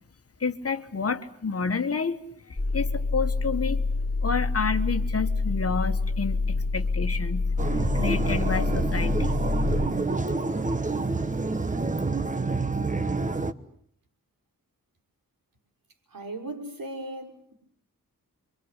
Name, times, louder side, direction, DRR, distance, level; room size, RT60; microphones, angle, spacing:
voice 1, 0.4-2.2 2.7-3.8 4.2-7.4 7.9-9.3, left 5 dB, 45° left, 8 dB, 1.5 m, -29 dB
sound 1, 2.6-9.9, left 3 dB, 20° left, 2.4 m, -27 dB
sound 2, 7.6-13.5, right 3 dB, 20° right, 1.1 m, -28 dB
voice 2, 16.1-17.5, right 1 dB, 80° right, 3 dB, 5.6 m, -37 dB
27.5 x 24.5 x 8.2 m, 0.65 s
wide cardioid pair, 155°, 34 cm